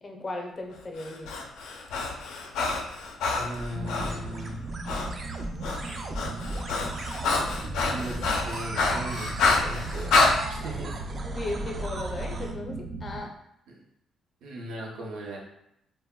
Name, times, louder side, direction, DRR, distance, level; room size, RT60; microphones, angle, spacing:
voice 1, 0.0-1.3 11.2-12.7 13.0-13.3, left 2 dB, 35° left, 2 dB, 0.5 m, -36 dB
Breathing, 1.0-4.2 4.9-5.1 5.4-10.3, left 3 dB, 90° left, 0.4 m, -27 dB
sound 1, 2.8-12.5, right 2 dB, 45° right, 0.3 m, -37 dB
voice 2, 3.3-4.7 7.9-10.2 10.5-11.0 13.7-13.8 14.4-15.4, equal, 90° right, -2 dB, 0.6 m, -38 dB
sound 2, 3.7-13.2, right 3 dB, 70° right, 1.0 m, -39 dB
2.2 x 2.1 x 3.5 m, 0.77 s
cardioid pair, 90°, 0 cm